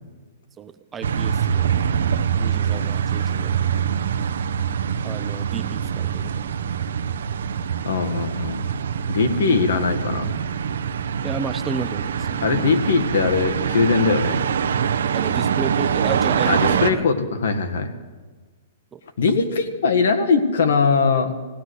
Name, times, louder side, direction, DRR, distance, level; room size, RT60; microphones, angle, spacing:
voice 1, 0.6-1.7 2.4-3.6 5.0-6.3 11.2-12.8 15.1-17.1 18.9-19.0, right 6 dB, 10° right, 11 dB, 0.4 m, -32 dB
sound 1, 1.0-16.9, right 7 dB, 85° right, 0.7 m, -24 dB
voice 2, 7.8-8.6 9.1-10.3 12.4-14.4 16.5-17.9 19.2-21.3, left 4 dB, 75° left, 6 dB, 1.6 m, -20 dB
16.5 x 9.8 x 8.0 m, 1.4 s
hypercardioid pair, 175°, 0 cm